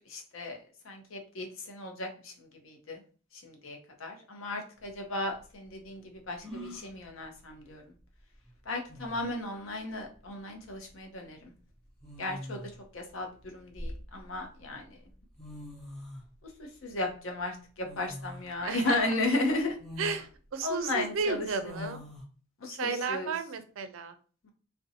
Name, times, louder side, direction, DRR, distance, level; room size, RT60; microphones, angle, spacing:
voice 1, 0.1-3.0 3.3-7.8 8.7-11.5 12.2-12.6 12.9-15.0 16.6-19.8 20.6-21.5 22.6-23.3 24.4-24.5, left 2 dB, 85° left, 3 dB, 0.7 m, -35 dB
sound 1, 4.8-4.9 6.4-6.9 8.4-8.5 8.9-9.4 10.7-10.9 12.0-12.8 13.4-14.4 15.1-15.2 15.4-16.2 17.9-18.5 19.0-19.1 19.8-20.3 21.6-22.2, left 1 dB, ahead, 0.6 m, -43 dB
voice 2, 18.6-19.2 20.0-22.0 22.7-24.1, right 5 dB, 85° right, 10 dB, 0.4 m, -33 dB
2.5 x 2.1 x 2.7 m, 0.39 s
head